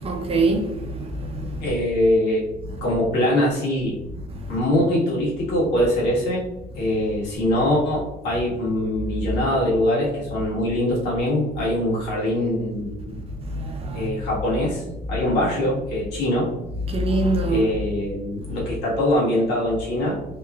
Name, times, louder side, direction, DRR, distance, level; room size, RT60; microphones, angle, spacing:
voice 1, 0.0-1.6 13.5-14.1 16.9-17.7, right 2 dB, 35° right, 0.6 m, -23 dB
voice 2, 1.6-2.4 2.8-4.0 4.5-6.4 6.7-13.2 13.9-14.8 15.1-16.5 17.5-20.2, left 1 dB, 80° left, 1.4 m, -23 dB
3.5 x 3.0 x 2.3 m
cardioid pair, 110°, 17 cm